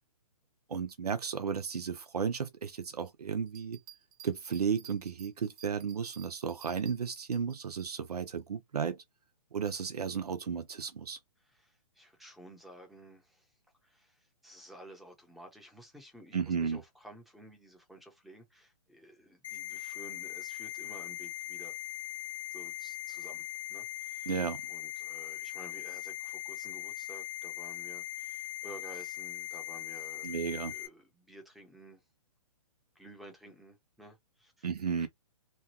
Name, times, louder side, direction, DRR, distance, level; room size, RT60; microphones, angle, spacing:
voice 1, 0.7-3.8 4.2-9.0 9.5-11.2 16.3-16.8 24.3-24.6 30.2-30.7 34.6-35.1, right 6 dB, 80° right, 0.7 m, -34 dB
sound 1, 3.5-7.9, right 11 dB, 30° right, 0.7 m, -54 dB
voice 2, 11.4-21.7 22.5-24.3 24.7-30.3 30.6-32.0 32.9-34.7 35.0-35.1, right 1 dB, ahead, 0.8 m, -53 dB
sound 2, 19.4-30.9, left 12 dB, 60° left, 1.0 m, -40 dB
3.0 x 2.3 x 2.8 m
hypercardioid pair, 140°, 20 cm